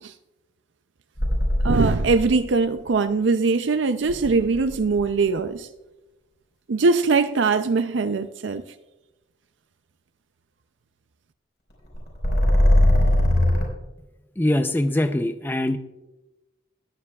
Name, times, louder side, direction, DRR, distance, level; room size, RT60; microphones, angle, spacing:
sound 1, 1.2-2.4 4.1-5.0 11.9-13.6, left 1 dB, 55° left, 4.7 m, -19 dB
voice 1, 1.6-5.7 6.7-8.6, right 4 dB, 70° right, 0.5 m, -21 dB
voice 2, 14.4-15.8, left 1 dB, 10° left, 0.5 m, -22 dB
20.5 x 9.8 x 2.3 m
head